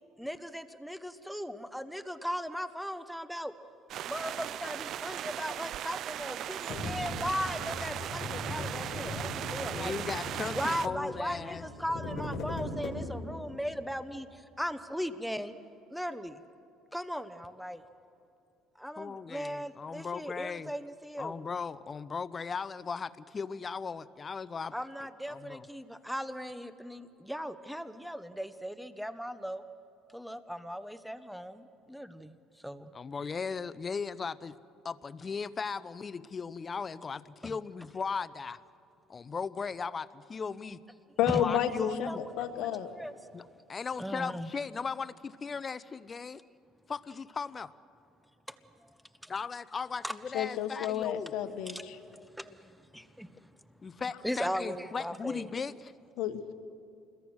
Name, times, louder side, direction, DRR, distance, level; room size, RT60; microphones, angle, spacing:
voice 1, 0.2-3.5 4.0-9.9 10.5-15.5 15.9-16.4 16.9-17.8 18.8-21.3 24.7-29.6 30.1-32.4 32.6-32.9 37.4-37.6 41.3-41.4 42.1-42.2 42.8-43.1 44.0-44.5 48.5-48.6 48.8-48.9 49.2-49.3 50.0-50.1 51.3-53.3 54.2-55.5, equal, ahead, 12 dB, 0.9 m, -38 dB
sound 1, 3.9-10.9, right 11 dB, 55° right, 0.5 m, -38 dB
sound 2, 6.7-13.4, left 2 dB, 45° left, 6.4 m, -39 dB
voice 2, 9.8-11.6 19.0-20.7 21.2-24.7 25.3-25.7 32.9-34.5 34.8-38.6 39.1-40.8 41.4-42.2 43.3-46.4 46.9-47.7 49.3-51.3 53.8-55.9, left 5 dB, 30° left, 16 dB, 0.7 m, -37 dB
voice 3, 41.2-42.1 42.4-42.9 50.3-51.9 56.2-56.5, left 10 dB, 70° left, 7 dB, 1.6 m, -31 dB
28.0 x 21.5 x 6.3 m, 2.6 s
cardioid pair, 115°, 0 cm